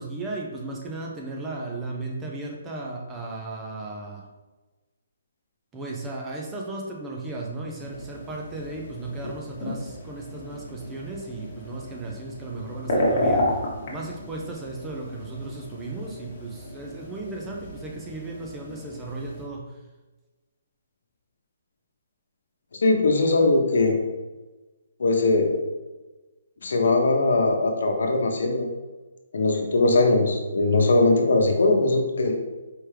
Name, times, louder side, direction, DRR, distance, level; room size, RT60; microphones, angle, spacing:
voice 1, 0.0-4.3 5.7-13.6 13.9-19.7, right 2 dB, 10° right, -1 dB, 0.4 m, -35 dB
sound 1, 7.8-19.4, left 1 dB, 35° left, 1.0 m, -32 dB
voice 2, 22.8-24.0 25.0-25.5 26.6-28.7 29.3-32.3, left 2 dB, 75° left, 3 dB, 0.9 m, -20 dB
4.5 x 3.4 x 3.2 m, 1.2 s
hypercardioid pair, 175°, 0 cm